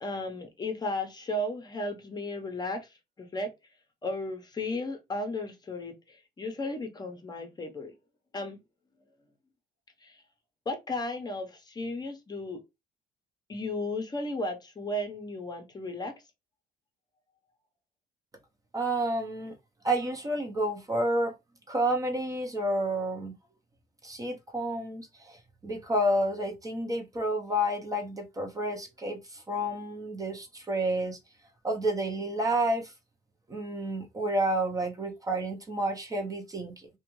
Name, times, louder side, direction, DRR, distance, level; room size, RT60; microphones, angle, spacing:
voice 1, 0.0-3.5 4.0-7.9 8.3-8.6 10.0-10.2 10.7-12.6 13.5-16.2, left 2 dB, 25° left, 0.7 m, -35 dB
voice 2, 18.7-19.5 19.8-21.3 21.7-23.4 24.0-31.2 31.6-32.9 33.5-36.9, right 1 dB, 20° right, 0.6 m, -30 dB
2.4 x 2.2 x 3.0 m
cardioid pair, 110°, 17 cm